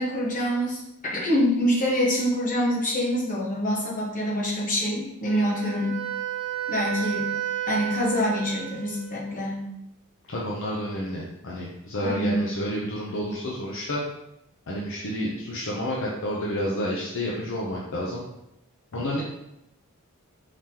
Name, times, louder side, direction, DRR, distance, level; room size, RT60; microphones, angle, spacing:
voice 1, 0.0-6.0 6.7-7.4 7.7-9.7 12.0-12.5, equal, 40° left, -5 dB, 1.3 m, -25 dB
Wind instrument woodwind instrument, 5.2-9.3, right 11 dB, 40° right, 1.4 m, -32 dB
voice 2, 10.3-14.0 14.7-18.2 18.9-19.2, equal, 60° left, -4 dB, 0.7 m, -30 dB
4.8 x 3.7 x 2.9 m, 0.84 s
head